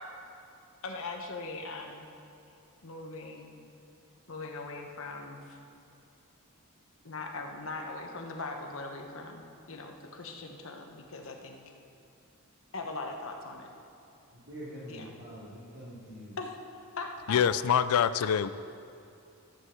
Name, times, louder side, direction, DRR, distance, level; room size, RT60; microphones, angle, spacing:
voice 1, 0.8-2.1 2.8-3.6 4.3-5.6 7.0-11.6 12.7-13.7 14.9-15.1 16.4-16.5 16.9-17.4, left 3 dB, 65° left, 1.2 m, -40 dB
voice 2, 14.3-16.4, equal, 75° right, 2.9 m, -45 dB
voice 3, 17.3-18.5, left 8 dB, 80° left, 0.4 m, -25 dB
13.0 x 5.5 x 7.3 m
head